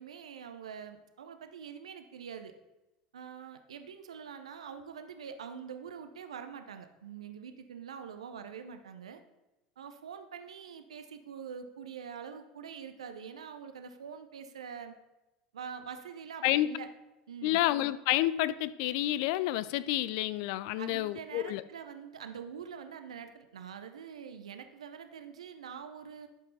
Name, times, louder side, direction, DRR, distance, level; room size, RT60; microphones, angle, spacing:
voice 1, 0.0-2.5 3.1-9.2 9.8-14.9 15.5-16.9 17.3-17.6 20.8-26.3, right 7 dB, 85° right, 8 dB, 0.7 m, -45 dB
voice 2, 17.4-21.6, left 15 dB, 65° left, 16 dB, 0.4 m, -29 dB
12.0 x 5.4 x 4.0 m, 1.0 s
hypercardioid pair, 80°, 3 cm